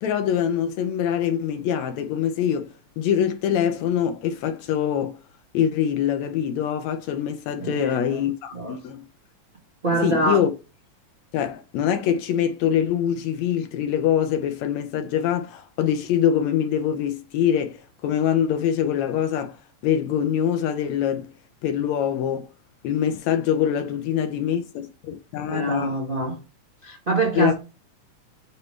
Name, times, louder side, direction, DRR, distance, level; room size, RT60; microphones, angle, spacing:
voice 1, 0.0-5.2 5.5-9.1 10.0-10.5 11.3-19.6 19.8-21.3 21.6-22.5 22.8-26.0 27.4-27.5, left 9 dB, 75° left, 1.9 m, -24 dB
voice 2, 7.6-8.2 8.5-8.7 9.8-10.4 25.5-26.4 26.8-27.5, right 2 dB, 50° right, 0.6 m, -25 dB
9.3 x 3.3 x 3.1 m
omnidirectional pair, 3.5 m